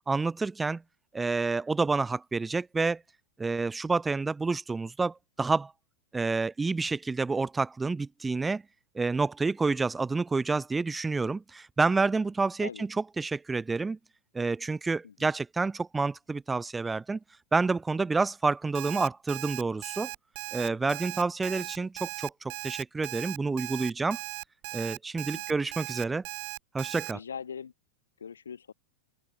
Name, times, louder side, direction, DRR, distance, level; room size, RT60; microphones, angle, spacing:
voice 1, 0.1-0.8 1.1-3.0 3.4-5.7 6.1-8.6 9.0-12.9 13.2-14.0 14.3-17.2 17.5-20.1 20.5-24.2 24.7-26.2 26.7-27.2, right 3 dB, 10° right, 0.3 m, -29 dB
Alarm, 18.7-27.1, right 40 dB or more, 45° right, 0.7 m, -38 dB
voice 2, 27.1-27.7 28.2-28.7, left 7 dB, 70° left, 2.6 m, -42 dB
open air
figure-of-eight pair, 90°, 0 cm